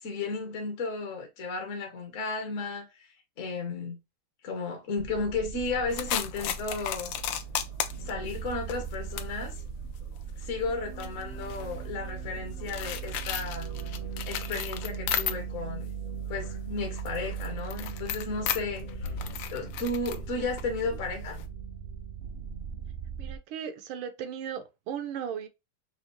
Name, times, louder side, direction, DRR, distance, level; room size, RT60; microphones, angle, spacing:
voice 1, 0.0-4.0 4.4-7.1 8.0-9.6 10.3-13.7 14.3-15.9 16.3-19.1 19.4-21.4, left 3 dB, 55° left, 0.9 m, -34 dB
sound 1, 5.0-23.4, right 7 dB, 50° right, 0.8 m, -39 dB
sound 2, 5.9-15.7 16.0-21.4, left 10 dB, 75° left, 1.2 m, -36 dB
voice 2, 23.2-25.5, right 8 dB, 75° right, 1.4 m, -36 dB
5.6 x 2.3 x 3.0 m
omnidirectional pair, 2.3 m